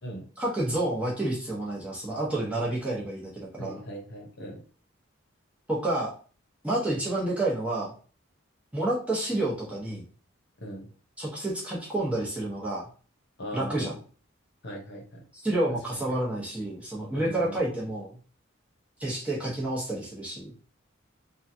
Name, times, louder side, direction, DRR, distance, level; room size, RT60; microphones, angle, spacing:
voice 1, 0.4-3.8 5.7-6.1 6.6-7.9 8.7-10.0 11.2-12.9 13.5-13.9 15.3-18.2 19.0-20.5, right 1 dB, 5° right, -6 dB, 0.9 m, -29 dB
voice 2, 3.6-4.6 10.6-10.9 13.4-13.9 14.6-15.2 16.1-16.2 17.1-17.6, equal, 60° left, 0 dB, 0.9 m, -39 dB
3.1 x 2.3 x 2.7 m, 0.40 s
head